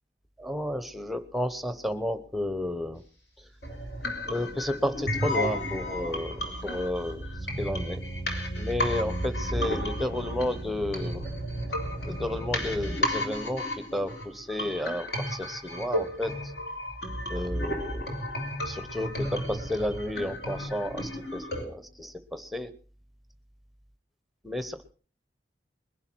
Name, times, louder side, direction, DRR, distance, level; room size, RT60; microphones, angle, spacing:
voice 1, 0.4-3.0 4.3-7.2 7.6-8.0 8.6-11.3 12.1-16.5 17.3-18.2 18.6-22.7 24.4-24.9, left 1 dB, ahead, 12 dB, 0.9 m, -32 dB
sound 1, 3.6-21.6, left 1 dB, 60° left, 3.6 m, -33 dB
sound 2, 4.4-13.0, right 1 dB, 75° left, 5.4 m, -38 dB
21.0 x 11.5 x 4.5 m, 0.38 s
head